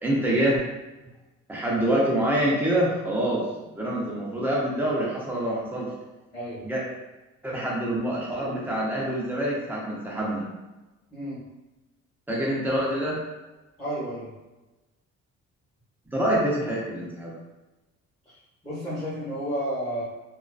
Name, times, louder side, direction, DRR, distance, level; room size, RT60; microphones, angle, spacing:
voice 1, 0.0-0.6 1.5-3.4 3.7-5.9 6.6-6.8 7.4-10.4 12.3-13.2 16.1-17.3, right 1 dB, 5° right, -5 dB, 0.5 m, -26 dB
voice 2, 13.8-14.3 18.3-18.4 18.6-20.0, equal, 15° left, -11 dB, 0.9 m, -31 dB
2.4 x 2.3 x 2.3 m, 1.1 s
cardioid pair, 145°, 30 cm